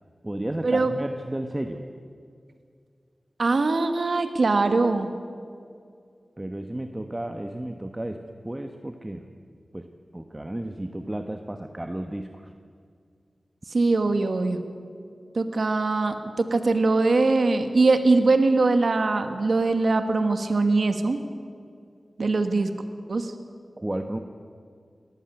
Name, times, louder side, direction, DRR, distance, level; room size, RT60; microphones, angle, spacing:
voice 1, 0.2-1.8 6.4-9.2 9.7-12.5 23.8-24.2, right 1 dB, 25° right, 6 dB, 1.1 m, -33 dB
voice 2, 3.4-5.1 13.7-14.6 15.3-21.2 22.2-22.7 23.1-23.3, right 3 dB, 75° right, 8 dB, 1.4 m, -22 dB
19.0 x 14.0 x 9.8 m, 2.2 s
cardioid pair, 50°, 0 cm